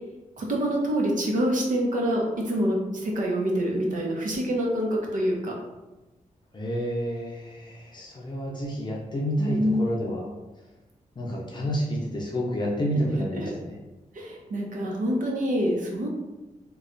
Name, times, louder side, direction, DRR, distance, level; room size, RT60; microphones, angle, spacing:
voice 1, 0.4-5.5 9.4-10.1 14.1-16.1, equal, 75° right, -1 dB, 0.8 m, -26 dB
voice 2, 6.5-10.3 11.2-13.7, equal, 35° left, -3 dB, 0.5 m, -29 dB
3.1 x 2.3 x 3.8 m, 1.1 s
wide cardioid pair, 175°, 14 cm